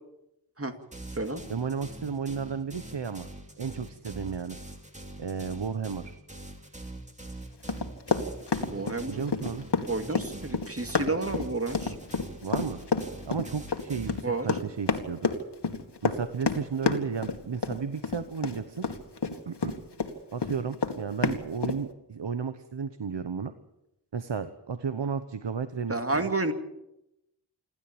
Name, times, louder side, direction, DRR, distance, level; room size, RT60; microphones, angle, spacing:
sound 1, 0.9-14.2, right 2 dB, 15° right, 2.8 m, -44 dB
voice 1, 1.5-3.3 3.6-4.6 5.2-6.1 9.1-9.7 12.4-12.8 13.3-15.3 16.0-18.9 19.5-19.8 20.3-23.5 24.1-26.3, right 6 dB, 70° right, 10 dB, 1.1 m, -33 dB
Run, 7.7-20.1 20.4-21.8, left 4 dB, 65° left, 2.1 m, -29 dB
voice 2, 8.7-9.3 9.9-11.9 14.2-14.5 25.9-26.5, right 2 dB, 30° right, 7 dB, 2.4 m, -30 dB
27.0 x 12.5 x 8.8 m, 0.87 s
wide cardioid pair, 85°, 43 cm